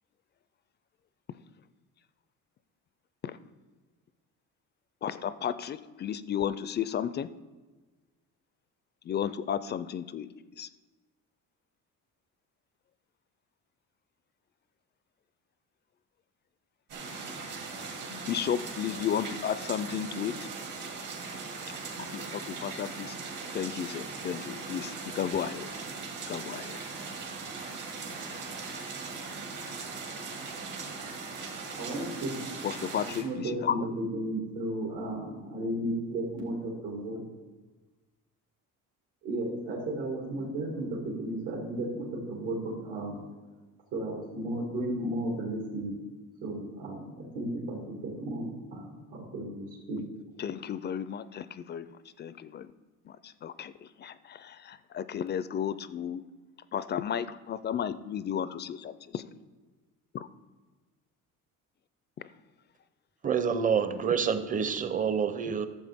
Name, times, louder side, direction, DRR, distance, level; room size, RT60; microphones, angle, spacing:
voice 1, 5.0-7.3 9.0-10.3 10.6-10.7 18.1-20.5 22.1-23.2 23.5-25.7 26.3-26.8 32.6-33.8 50.4-51.9 52.2-52.7 53.0-56.2 56.7-58.9, left 9 dB, 30° left, 15 dB, 0.4 m, -33 dB
sound 1, 16.9-33.2, right 4 dB, 65° right, 2.0 m, -39 dB
voice 2, 31.7-32.3 33.2-37.2 39.2-43.2 43.9-45.9 46.4-50.0, right 1 dB, 80° right, -4 dB, 2.4 m, -34 dB
voice 3, 63.2-65.7, right 7 dB, 25° right, 11 dB, 0.6 m, -27 dB
13.5 x 7.1 x 3.5 m, 1.2 s
cardioid pair, 125°, 34 cm